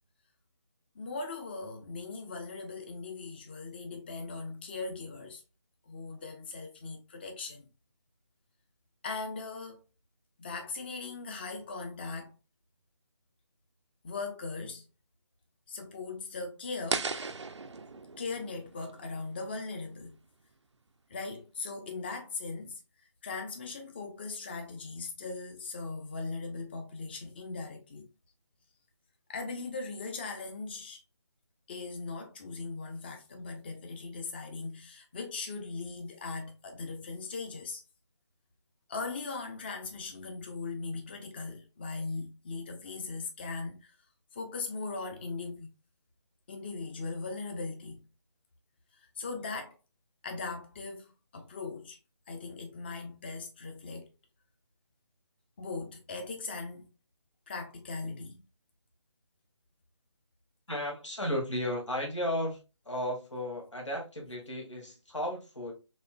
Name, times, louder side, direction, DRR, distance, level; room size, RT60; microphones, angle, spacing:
voice 1, 0.9-5.4 5.9-7.7 9.0-9.8 10.4-12.3 14.0-14.8 15.7-17.1 18.2-20.2 21.1-28.1 29.3-31.0 31.7-37.8 38.9-44.0 44.3-45.7 46.5-48.0 48.9-49.7 50.2-52.0 52.3-54.1 55.6-56.9 57.5-58.4, left 3 dB, 20° left, 0.6 m, -39 dB
sound 1, 16.9-19.9, right 4 dB, 65° right, 0.4 m, -37 dB
voice 2, 60.7-62.6 62.9-65.7, left 1 dB, 75° left, 1.9 m, -34 dB
4.2 x 3.0 x 2.2 m
figure-of-eight pair, 150°, 16 cm